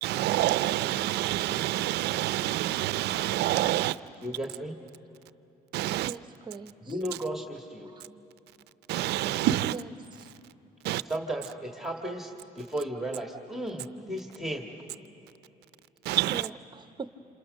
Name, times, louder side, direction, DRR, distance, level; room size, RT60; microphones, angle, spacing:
voice 1, 0.0-4.0 5.7-6.1 8.9-9.7 10.8-11.0 16.1-16.5, right 15 dB, 80° right, 0.6 m, -27 dB
voice 2, 4.2-4.7 6.9-7.9 11.1-14.8, right 1 dB, ahead, 1.8 m, -34 dB
voice 3, 6.0-7.0 7.8-8.0 9.7-9.9 10.2-10.3 16.3-17.1, right 5 dB, 25° right, 0.8 m, -41 dB
28.0 x 27.5 x 6.5 m
cardioid pair, 110°, 17 cm